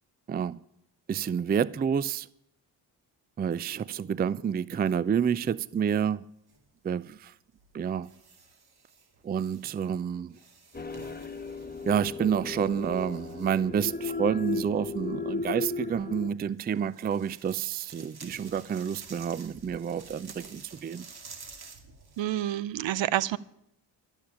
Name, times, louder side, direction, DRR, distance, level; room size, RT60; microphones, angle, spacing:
voice 1, 0.3-0.6 1.1-2.3 3.4-6.2 6.8-7.3 7.7-8.1 9.2-10.4 11.9-21.0, right 8 dB, 20° right, 0.4 m, -29 dB
sound 1, 5.0-5.4 6.5-6.7 7.6-10.0 10.3-13.7 16.6-22.2, right 4 dB, 50° right, 2.3 m, -51 dB
sound 2, 10.7-16.3, left 4 dB, 20° left, 1.3 m, -35 dB
voice 2, 22.2-23.4, right 13 dB, 65° right, 0.7 m, -28 dB
12.5 x 7.0 x 8.9 m
supercardioid pair, 50°, 48 cm